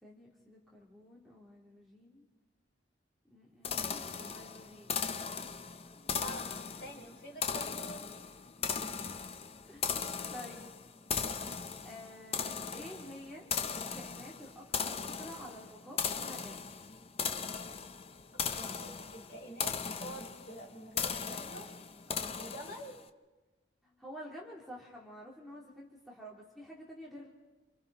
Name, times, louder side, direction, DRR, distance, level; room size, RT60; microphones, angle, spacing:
voice 1, 0.0-2.3 3.2-5.0 9.7-10.7 11.8-13.5 13.7-16.6 22.1-22.4 23.8-27.3, equal, ahead, -5 dB, 3.1 m, -50 dB
sound 1, 3.6-23.0, left 6 dB, 30° left, 0.6 m, -38 dB
voice 2, 6.8-8.1 10.4-10.6 18.3-21.7 22.4-23.0, right 1 dB, 50° left, -2 dB, 5.6 m, -47 dB
27.5 x 27.5 x 4.1 m, 1.2 s
head